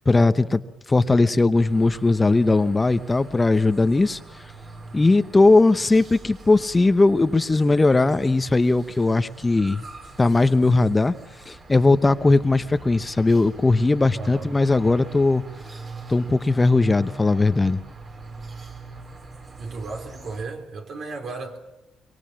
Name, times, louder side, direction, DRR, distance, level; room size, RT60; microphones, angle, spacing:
voice 1, 0.1-4.4 4.9-9.9 10.2-11.1 11.5-15.4 16.1-17.8, left 3 dB, 20° left, 12 dB, 0.9 m, -19 dB
sound 1, 1.5-20.5, right 3 dB, 40° right, 3.9 m, -43 dB
voice 2, 14.2-14.5 19.6-21.6, right 3 dB, 60° right, 5 dB, 4.0 m, -34 dB
24.0 x 23.5 x 7.5 m, 0.93 s
cardioid pair, 90°, 0 cm